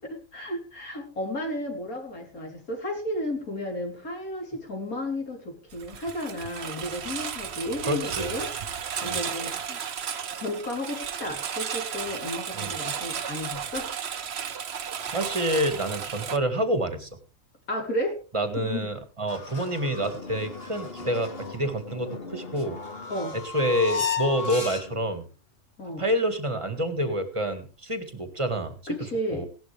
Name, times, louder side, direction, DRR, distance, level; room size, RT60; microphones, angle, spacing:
voice 1, 0.0-8.5 9.0-9.9 10.4-13.9 17.7-18.2 18.6-18.9 23.1-23.4 25.8-26.0 28.9-29.4, left 1 dB, 80° left, 2 dB, 4.1 m, -33 dB
Engine, 5.7-16.4, right 7 dB, 50° right, 1.1 m, -34 dB
voice 2, 7.9-8.3 9.0-9.2 12.5-12.7 15.1-17.1 18.3-22.8 23.3-25.2 26.0-28.9 29.3-29.5, equal, 20° right, 9 dB, 1.9 m, -28 dB
sound 1, 19.3-25.2, left 5 dB, 40° left, 1.9 m, -35 dB
17.0 x 11.5 x 3.4 m, 0.35 s
omnidirectional pair, 1.5 m